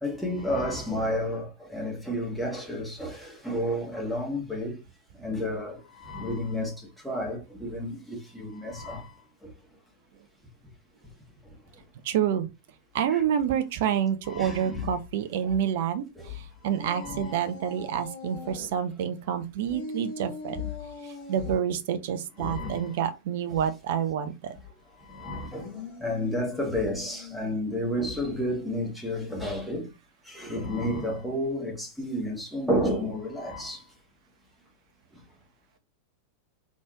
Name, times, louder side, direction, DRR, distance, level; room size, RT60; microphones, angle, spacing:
voice 1, 0.0-1.5 1.7-4.8 5.2-6.7 7.0-9.1 13.1-13.2 14.2-14.9 16.8-17.4 22.4-23.0 25.1-25.7 26.0-29.9 30.3-33.8, left 1 dB, ahead, 1.7 m, -31 dB
voice 2, 12.0-12.5 12.9-20.6 21.3-24.5, right 9 dB, 55° right, 0.7 m, -28 dB
sound 1, 16.7-18.7 19.7-21.6 25.4-27.7, left 4 dB, 45° left, 1.1 m, -41 dB
4.2 x 3.5 x 2.9 m
figure-of-eight pair, 90°, 0 cm